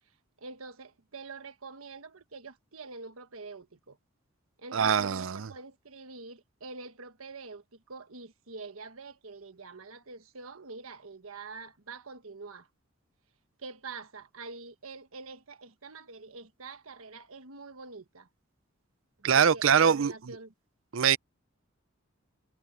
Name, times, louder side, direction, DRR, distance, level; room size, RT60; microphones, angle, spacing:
voice 1, 0.4-4.0 4.6-12.7 13.6-18.3 19.2-20.5, right 4 dB, 90° right, 1.4 m, -45 dB
voice 2, 4.7-5.5 19.2-20.1 20.9-21.2, right 7 dB, 70° right, 0.5 m, -23 dB
head